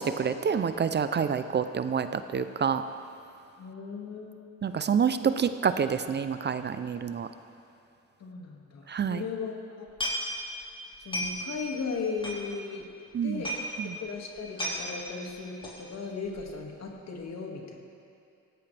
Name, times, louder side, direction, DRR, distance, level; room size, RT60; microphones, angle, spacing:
voice 1, 0.0-2.8 4.6-7.3 8.9-9.2 13.1-13.4 13.8-14.0, right 7 dB, 35° right, 11 dB, 0.5 m, -27 dB
voice 2, 3.6-4.5 8.2-9.9 11.1-12.8 13.2-13.5 14.0-17.8, left 5 dB, 60° left, 1 dB, 2.2 m, -37 dB
sound 1, 9.9-10.6 10.9-11.6 11.9-12.0 12.2-12.8 13.1-13.2 13.4-13.7 14.1-14.2 14.4-14.8 15.6-15.9 16.2-16.6 16.9-17.0, equal, 15° left, 4.1 m, -33 dB
17.5 x 16.0 x 3.4 m, 2.6 s
cardioid pair, 90°, 30 cm